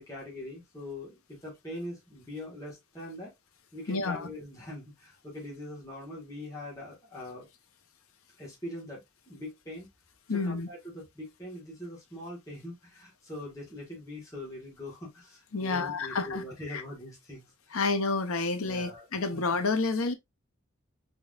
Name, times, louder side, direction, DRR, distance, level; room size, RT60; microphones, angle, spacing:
voice 1, 0.0-3.3 3.7-7.5 8.4-9.9 10.4-17.8 18.6-19.1 19.3-19.4, left 1 dB, 15° left, 1.6 m, -42 dB
voice 2, 3.9-4.3 10.3-10.7 15.5-16.4 16.7-16.8 17.7-20.1, left 3 dB, 80° left, 0.8 m, -29 dB
4.6 x 3.8 x 2.5 m
head